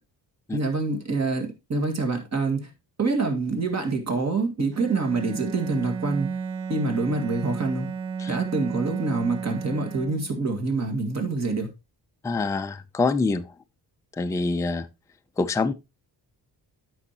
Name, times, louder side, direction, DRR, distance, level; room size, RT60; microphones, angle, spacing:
voice 1, 0.5-2.7 3.0-6.3 6.7-7.9 8.3-11.7, right 3 dB, 40° right, 2.0 m, -26 dB
Bowed string instrument, 4.7-10.5, right 6 dB, 85° right, 1.1 m, -33 dB
voice 2, 12.2-13.5 14.2-14.9 15.4-15.7, left 3 dB, 10° left, 0.3 m, -25 dB
12.5 x 5.5 x 2.9 m
wide cardioid pair, 150°, 41 cm